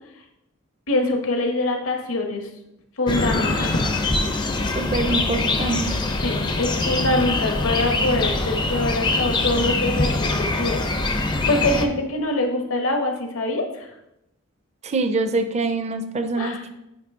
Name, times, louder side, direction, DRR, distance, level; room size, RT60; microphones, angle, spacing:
voice 1, 0.9-2.5 3.0-3.7 6.2-13.9 16.4-16.6, left 2 dB, 75° left, 3 dB, 0.9 m, -24 dB
sound 1, 3.1-11.9, left 2 dB, 20° left, 0.4 m, -23 dB
voice 2, 4.7-5.9 14.8-16.7, right 3 dB, 30° right, 9 dB, 0.4 m, -24 dB
8.7 x 3.0 x 3.5 m, 0.85 s
head